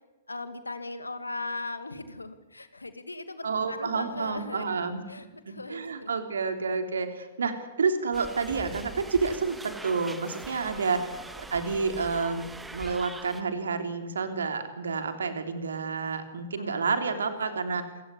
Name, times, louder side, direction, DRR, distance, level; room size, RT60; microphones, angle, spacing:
voice 1, 0.3-4.7 5.1-6.1 10.8-11.1 16.6-18.0, left 3 dB, 80° left, 11 dB, 2.4 m, -39 dB
voice 2, 3.4-5.0 5.5-11.2 11.5-17.8, right 4 dB, 65° right, 8 dB, 3.3 m, -29 dB
sound 1, 8.1-13.4, right 2 dB, 5° right, 1.9 m, -43 dB
26.0 x 17.0 x 10.0 m, 1.2 s
figure-of-eight pair, 110°, 0 cm